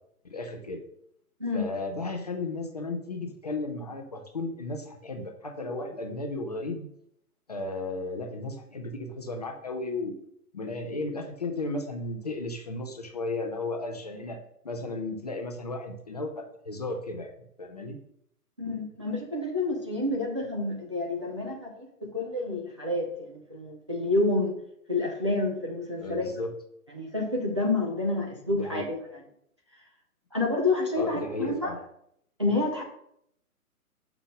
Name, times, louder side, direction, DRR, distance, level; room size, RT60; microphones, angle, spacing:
voice 1, 0.3-0.8 1.5-6.9 7.5-10.2 10.5-14.4 14.6-17.3 17.6-18.0 26.0-26.5 28.5-28.9 31.0-31.8, left 2 dB, 25° left, 4 dB, 0.6 m, -34 dB
voice 2, 1.4-1.7 18.6-24.6 24.9-26.3 26.9-29.0 30.3-31.7 32.4-32.8, left 2 dB, 20° right, -3 dB, 0.5 m, -29 dB
5.7 x 3.7 x 6.0 m, 0.72 s
figure-of-eight pair, 130°, 46 cm